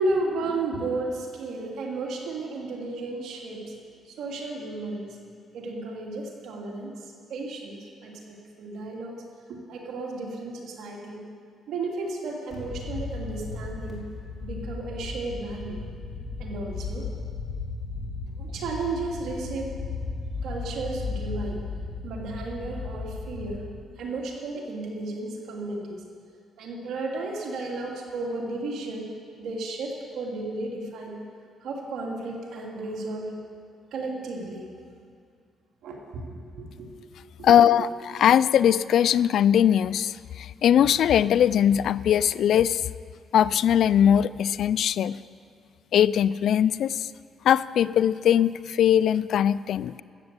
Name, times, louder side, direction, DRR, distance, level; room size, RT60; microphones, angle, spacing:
voice 1, 0.0-3.7 4.0-5.2 5.5-9.2 9.5-11.2 11.7-14.0 14.4-15.8 16.4-17.1 18.3-19.7 20.4-21.6 22.0-23.7 24.0-26.0 26.6-29.1 29.4-31.2 31.6-33.3 33.9-34.7 35.8-36.9 37.4-37.7, right 2 dB, 75° right, -1 dB, 2.4 m, -33 dB
sound 1, 12.5-23.6, left 3 dB, 30° left, 3.3 m, -35 dB
voice 2, 37.4-42.8 43.3-45.2 45.9-47.1 47.4-50.0, left 9 dB, 70° left, 18 dB, 0.3 m, -21 dB
13.5 x 8.1 x 8.0 m, 2.2 s
cardioid pair, 90°, 0 cm